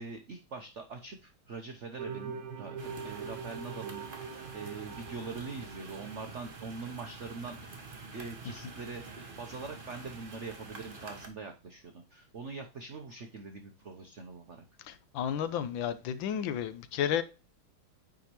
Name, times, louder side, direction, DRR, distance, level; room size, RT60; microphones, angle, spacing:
voice 1, 0.0-7.6 8.1-14.6, right 4 dB, 70° right, 0.6 m, -43 dB
sound 1, 2.0-6.6, right 5 dB, 90° right, 2.0 m, -43 dB
sound 2, 2.8-11.3, right 3 dB, 30° right, 1.0 m, -47 dB
voice 2, 14.9-17.2, left 9 dB, 75° left, 1.3 m, -32 dB
9.1 x 4.9 x 3.0 m
omnidirectional pair, 2.3 m